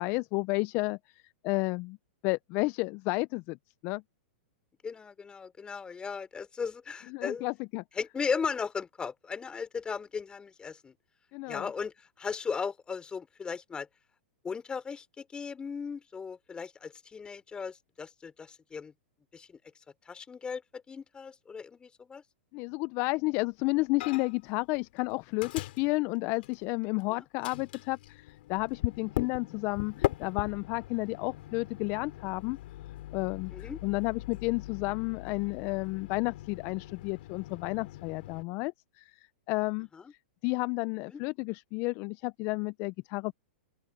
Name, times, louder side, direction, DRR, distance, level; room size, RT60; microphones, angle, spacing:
voice 1, 0.0-2.0 2.2-3.6 3.8-4.0 7.1-7.8 11.3-11.7 22.5-32.6 33.1-39.9 40.4-43.3, left 26 dB, 40° left, 0.6 m, -32 dB
voice 2, 4.8-7.5 8.0-10.9 11.5-13.9 14.4-18.9 19.3-19.5 20.1-22.2 33.5-33.8 40.0-40.1 41.1-41.2, left 5 dB, 15° left, 3.5 m, -37 dB
Microwave oven, 24.0-24.5 24.8-27.0 27.4-38.4, left 15 dB, 60° left, 4.0 m, -40 dB
open air
hypercardioid pair, 120°, 6 cm